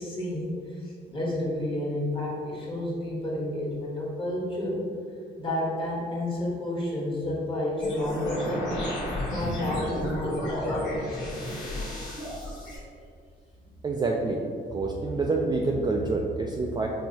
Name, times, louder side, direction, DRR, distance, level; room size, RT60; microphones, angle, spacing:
voice 1, 0.0-4.8 5.4-8.7 9.2-11.8 14.7-14.8, left 1 dB, 25° left, -4 dB, 1.3 m, -31 dB
sound 1, 7.8-12.8, left 1 dB, 70° left, 1.5 m, -33 dB
voice 2, 13.8-14.4 14.7-16.9, right 3 dB, 20° right, -1 dB, 0.3 m, -27 dB
4.5 x 3.0 x 2.7 m, 2.2 s
cardioid pair, 90°, 20 cm